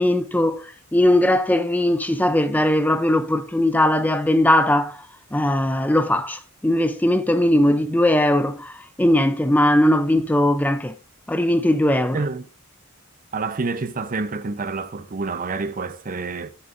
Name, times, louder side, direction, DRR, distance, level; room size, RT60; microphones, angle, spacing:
voice 1, 0.0-10.9 11.3-12.2, left 1 dB, 10° left, 0.4 m, -19 dB
voice 2, 12.1-12.5 13.3-16.5, right 3 dB, 40° right, 0.7 m, -28 dB
13.0 x 6.6 x 2.6 m
head